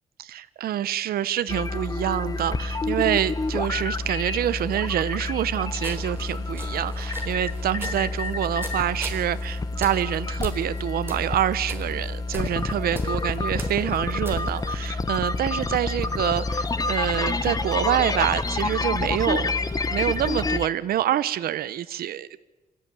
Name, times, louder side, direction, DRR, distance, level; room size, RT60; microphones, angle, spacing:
voice 1, 0.2-19.6 19.9-22.4, right 11 dB, 85° right, 15 dB, 0.8 m, -26 dB
sound 1, 1.5-20.7, left 3 dB, 25° left, 1.0 m, -28 dB
sound 2, 5.8-14.8, right 2 dB, 15° right, 4.2 m, -41 dB
26.0 x 13.5 x 9.7 m, 1.2 s
cardioid pair, 135°, 15 cm